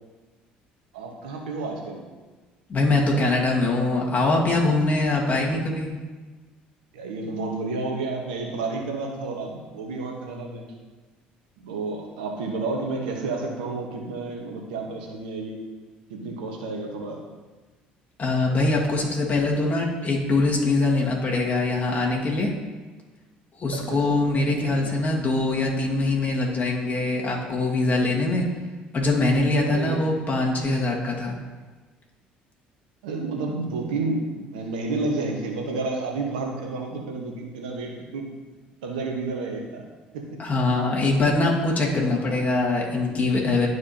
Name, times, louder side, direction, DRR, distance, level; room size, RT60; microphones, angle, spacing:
voice 1, 0.9-2.0 5.1-5.5 6.9-10.6 11.6-15.6 16.1-17.2 23.7-24.2 24.5-25.0 29.6-30.0 33.0-38.3 38.8-39.8 40.1-40.4, right 3 dB, 85° right, 1 dB, 1.3 m, -31 dB
voice 2, 2.7-5.9 18.2-22.5 23.6-28.5 28.9-31.3 40.4-43.7, left 2 dB, 40° left, -2 dB, 2.0 m, -23 dB
12.0 x 4.7 x 2.9 m, 1.3 s
hypercardioid pair, 65°, 4 cm